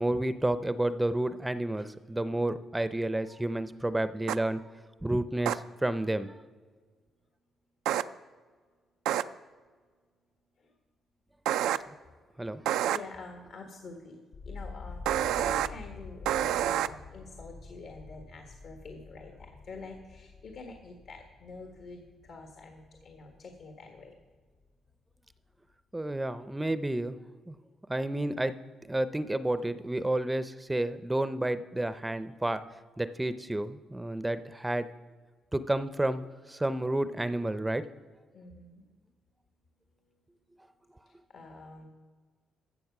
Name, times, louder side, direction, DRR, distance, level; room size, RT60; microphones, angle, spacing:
voice 1, 0.0-4.6 5.0-6.3 12.4-12.6 25.9-27.2 27.5-27.6 27.9-28.5 28.9-32.6 33.0-34.9 35.5-37.8, right 1 dB, 10° right, 12 dB, 0.6 m, -30 dB
sound 1, 4.3-4.4 5.5-5.6 7.9-8.0 9.1-9.2 11.5-11.8 12.7-13.0 15.1-15.7 16.3-16.9, right 11 dB, 90° right, 0.3 m, -27 dB
voice 2, 12.9-14.2 14.4-24.1 38.3-38.8 41.3-41.9, left 3 dB, 65° left, 3 dB, 1.5 m, -47 dB
sound 2, 14.3-24.3 24.6-25.3, left 4 dB, 80° left, 2.2 m, -47 dB
14.5 x 7.1 x 6.0 m, 1.5 s
cardioid pair, 90°, 0 cm